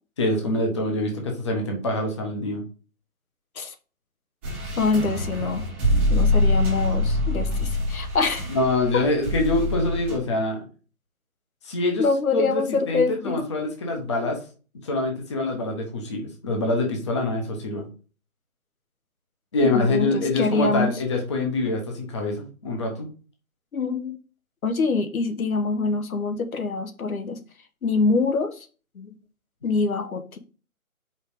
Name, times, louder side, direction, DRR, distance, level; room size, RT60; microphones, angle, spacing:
voice 1, 0.2-2.6 8.5-10.6 11.6-12.0 12.3-14.4 14.8-17.8 19.5-23.1, left 2 dB, 20° left, 0.9 m, -25 dB
sound 1, 4.4-10.2, left 1 dB, 10° right, 0.9 m, -24 dB
voice 2, 4.8-5.7 6.1-8.5 12.0-13.4 19.6-20.9 23.7-24.2 24.6-27.4 27.8-28.7 28.9-29.1 29.6-30.4, left 4 dB, 75° left, 1.1 m, -25 dB
5.3 x 3.9 x 5.0 m
hypercardioid pair, 160°, 43 cm